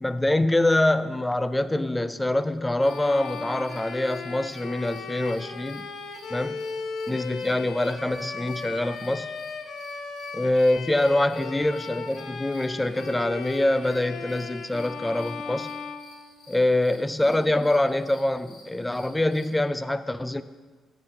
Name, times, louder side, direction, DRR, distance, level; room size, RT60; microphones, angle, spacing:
voice 1, 0.0-5.9 6.3-6.6 7.1-9.3 10.3-15.7 16.5-20.4, left 1 dB, 10° left, 13 dB, 0.4 m, -25 dB
sound 1, 2.8-19.6, left 3 dB, 85° left, 1.8 m, -54 dB
Bowed string instrument, 2.8-16.8, left 5 dB, 60° left, 0.7 m, -37 dB
9.0 x 6.1 x 4.9 m, 1.4 s
cardioid pair, 90°, 0 cm